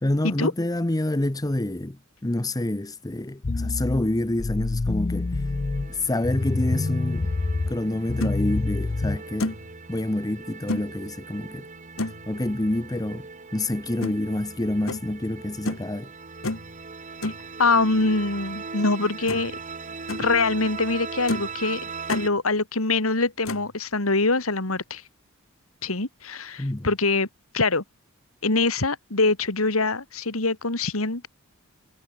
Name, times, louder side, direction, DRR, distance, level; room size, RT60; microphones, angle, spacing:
voice 1, 0.0-5.3 5.9-7.3 7.7-9.6 9.9-11.7 12.3-13.3 13.5-16.1 26.6-26.9, left 1 dB, 20° left, 0.8 m, -27 dB
sound 1, 3.4-9.2, left 3 dB, 35° left, 0.5 m, -27 dB
sound 2, 4.9-22.3, right 4 dB, 35° right, 1.6 m, -39 dB
sound 3, 7.9-8.3 8.9-9.0 9.4-9.7 10.7-10.9 12.0-12.3 14.0-14.2 14.9-15.1 15.6-15.9 16.4-16.7 17.2-17.4 18.8-18.9 19.3-19.6 19.9-20.2 20.8-20.9 21.3-21.5 21.8-22.3 23.4-23.7, left 2 dB, 70° left, 1.9 m, -30 dB
voice 2, 17.6-19.5 20.2-21.8 22.1-25.0 25.8-27.3 27.5-27.8 28.4-31.3, left 3 dB, 85° left, 2.7 m, -24 dB
head